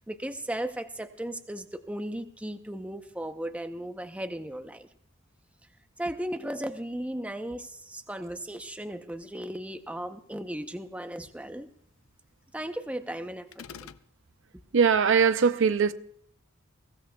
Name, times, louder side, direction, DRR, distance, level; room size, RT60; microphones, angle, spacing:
voice 1, 0.0-4.9 6.0-11.7 12.5-13.9, right 1 dB, 5° right, 0.7 m, -36 dB
sound 1, 13.5-14.1, left 7 dB, 75° left, 0.6 m, -44 dB
voice 2, 14.7-15.9, right 6 dB, 60° right, 0.5 m, -21 dB
22.5 x 16.0 x 2.3 m
head